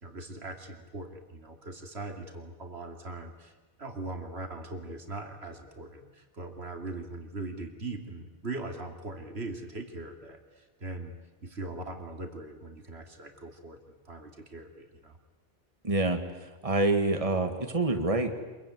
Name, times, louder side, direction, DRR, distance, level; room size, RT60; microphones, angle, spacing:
voice 1, 0.0-11.2 11.4-15.2, right 2 dB, 70° right, 4 dB, 3.0 m, -40 dB
voice 2, 15.8-16.2 16.6-18.4, right 2 dB, 30° right, 6 dB, 2.0 m, -26 dB
27.0 x 23.0 x 9.5 m, 1.2 s
omnidirectional pair, 1.1 m